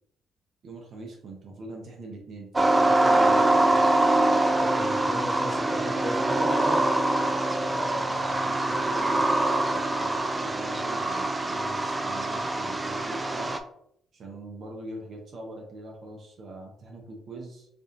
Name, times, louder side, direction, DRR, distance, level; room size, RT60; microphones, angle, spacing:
voice 1, 0.6-4.1 7.7-13.5 14.1-17.7, right 2 dB, 60° right, 1 dB, 0.8 m, -42 dB
sound 1, 2.5-13.6, right 2 dB, 20° right, 0.4 m, -24 dB
voice 2, 4.6-6.9, left 1 dB, 15° left, 2 dB, 0.9 m, -36 dB
4.7 x 2.6 x 2.5 m, 0.70 s
cardioid pair, 90°, 0 cm